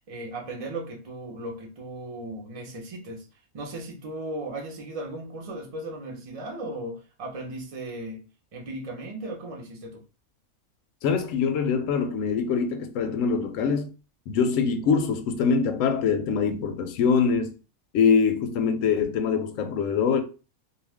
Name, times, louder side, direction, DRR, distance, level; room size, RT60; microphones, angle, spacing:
voice 1, 0.1-3.2 3.5-8.2 8.5-10.0, right 1 dB, 35° right, 0.6 m, -36 dB
voice 2, 11.0-13.9 14.3-17.5 17.9-20.2, left 6 dB, 70° left, 0.9 m, -24 dB
2.4 x 2.4 x 3.4 m
omnidirectional pair, 1.6 m